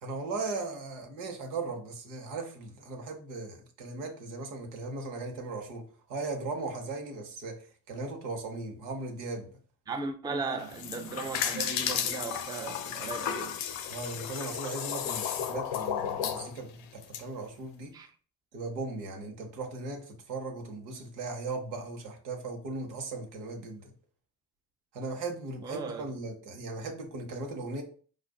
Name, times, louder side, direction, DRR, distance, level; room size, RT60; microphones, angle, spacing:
voice 1, 0.0-9.5 13.9-17.9 18.5-23.9 24.9-27.8, right 3 dB, 85° right, 0.8 m, -38 dB
voice 2, 9.9-13.6 17.9-18.1 25.6-26.0, right 4 dB, 10° right, 0.4 m, -36 dB
water-and-blowholes, 10.6-17.2, left 8 dB, 70° left, 0.6 m, -33 dB
4.9 x 2.4 x 2.3 m
hypercardioid pair, 45°, 50 cm